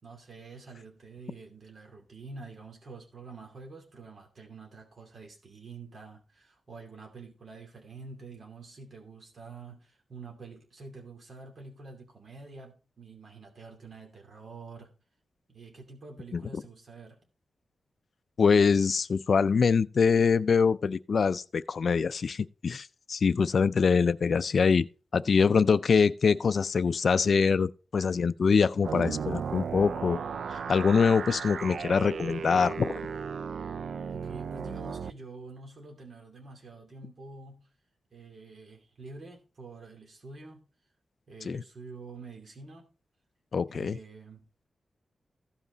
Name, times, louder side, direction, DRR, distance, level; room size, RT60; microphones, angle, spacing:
voice 1, 0.0-14.9 15.5-17.2 34.1-37.7 38.1-40.6 41.3-42.9 43.7-44.7, right 3 dB, 50° right, 2.7 m, -47 dB
voice 2, 18.4-24.9 25.1-30.2 30.5-32.9 41.5-41.6 43.5-44.0, left 5 dB, 55° left, 0.4 m, -24 dB
sound 1, 28.8-35.1, right 6 dB, 85° right, 0.4 m, -35 dB
15.5 x 5.7 x 4.0 m
wide cardioid pair, 140°, 0 cm